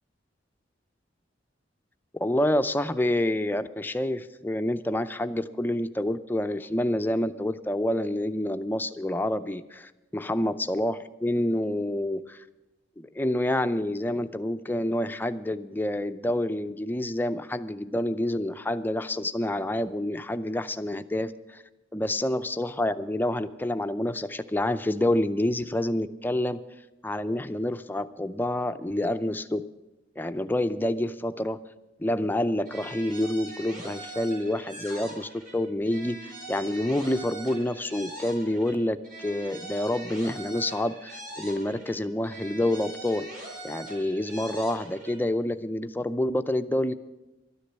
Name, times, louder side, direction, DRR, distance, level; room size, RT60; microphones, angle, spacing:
voice 1, 2.1-12.4 13.0-21.6 21.9-26.6 27.0-29.6 30.2-31.6 32.0-43.3 43.6-46.9, left 1 dB, 10° left, 10 dB, 0.5 m, -28 dB
sound 1, 32.6-35.6 35.8-38.8 39.0-42.0 42.2-45.2, right 2 dB, 45° right, 5.9 m, -42 dB
12.5 x 10.0 x 8.0 m, 1.0 s
head